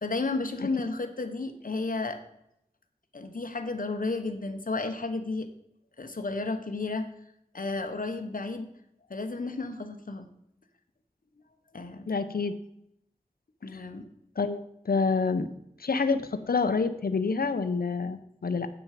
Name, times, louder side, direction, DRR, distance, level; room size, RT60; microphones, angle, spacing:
voice 1, 0.0-2.2 3.1-5.5 6.0-7.1 7.5-8.7 9.1-10.3 11.7-12.0 13.6-14.0, left 3 dB, 65° left, 6 dB, 1.0 m, -32 dB
voice 2, 12.1-12.5 14.4-15.5 15.8-18.7, left 4 dB, 80° left, 10 dB, 0.7 m, -27 dB
8.9 x 6.1 x 4.9 m, 0.78 s
wide cardioid pair, 40°, 15 cm